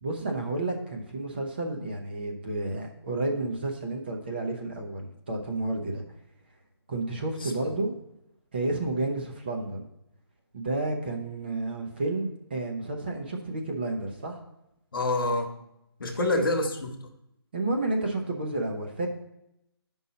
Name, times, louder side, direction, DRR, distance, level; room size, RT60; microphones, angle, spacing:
voice 1, 0.0-6.0 6.9-7.9 8.5-9.9 10.5-14.4 17.5-19.1, right 2 dB, 25° right, 2 dB, 0.8 m, -31 dB
voice 2, 7.4-7.8 14.9-15.5 16.0-16.9, left 2 dB, 50° left, 4 dB, 1.2 m, -27 dB
8.9 x 5.5 x 4.1 m, 0.83 s
hypercardioid pair, 175°, 14 cm